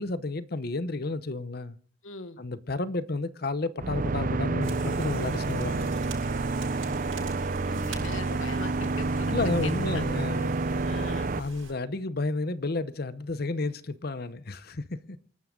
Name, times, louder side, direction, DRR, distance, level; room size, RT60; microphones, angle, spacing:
voice 1, 0.0-1.8 2.4-5.9 9.3-10.6 11.4-15.2, left 2 dB, 50° left, 0.9 m, -31 dB
voice 2, 2.0-2.4 7.0-7.1 7.4-10.0 10.8-11.3, left 3 dB, 85° left, 1.5 m, -41 dB
sound 1, 3.8-11.4, right 3 dB, 45° right, 0.7 m, -29 dB
sound 2, 4.6-11.7, right 3 dB, 90° right, 7.9 m, -43 dB
28.0 x 12.5 x 3.8 m
head